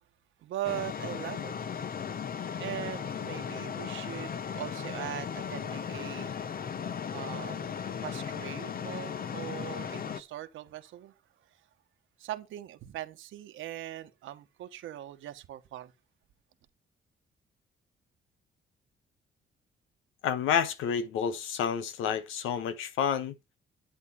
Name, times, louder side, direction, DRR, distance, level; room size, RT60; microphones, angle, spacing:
voice 1, 0.4-1.5 2.6-6.5 7.1-7.7 8.0-11.1 12.2-15.9, right 13 dB, 85° right, 1.5 m, -40 dB
sound 1, 0.6-10.2, left 7 dB, 45° left, 0.9 m, -36 dB
voice 2, 20.2-23.3, left 8 dB, 90° left, 1.3 m, -29 dB
11.0 x 8.4 x 4.2 m
cardioid pair, 90°, 20 cm